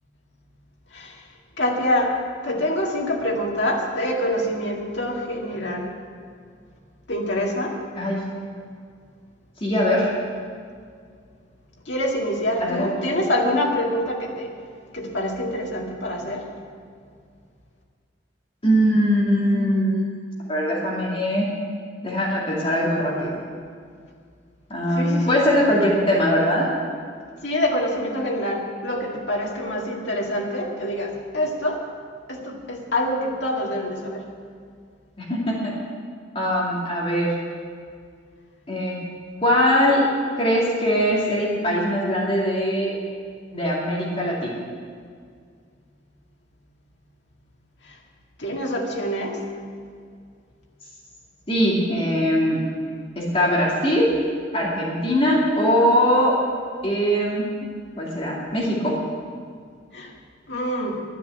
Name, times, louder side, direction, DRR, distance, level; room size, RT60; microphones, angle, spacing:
voice 1, 0.9-1.2 1.6-2.1 2.4-5.9 7.1-7.8 11.9-14.5 14.9-16.5 24.9-25.4 27.4-31.8 32.3-34.2 47.8-48.0 48.4-49.4 59.9-60.1 60.5-61.0, left 1 dB, 65° left, -1 dB, 2.1 m, -25 dB
voice 2, 9.6-10.1 12.6-13.0 18.6-20.0 20.5-21.5 22.0-23.3 24.7-26.7 35.2-35.7 36.3-37.3 38.7-39.0 39.4-40.0 40.4-42.9 43.5-44.6 51.5-52.6 53.2-54.1 54.5-56.3 56.8-57.5 58.0-58.9, equal, 30° left, -4 dB, 2.4 m, -21 dB
11.5 x 10.0 x 8.1 m, 2.1 s
head